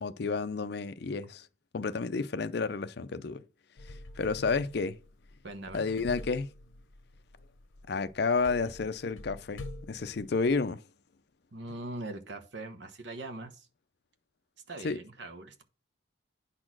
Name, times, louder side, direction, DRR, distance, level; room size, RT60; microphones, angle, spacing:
voice 1, 0.0-1.5 1.7-3.4 3.8-5.0 5.7-6.5 7.9-10.8 14.8-15.0, left 4 dB, 55° left, 0.5 m, -31 dB
sound 1, 3.8-10.7, left 2 dB, 80° left, 0.8 m, -47 dB
voice 2, 5.4-5.8 11.5-13.7 14.7-15.6, right 2 dB, 65° right, 1.0 m, -41 dB
9.6 x 4.2 x 6.0 m
head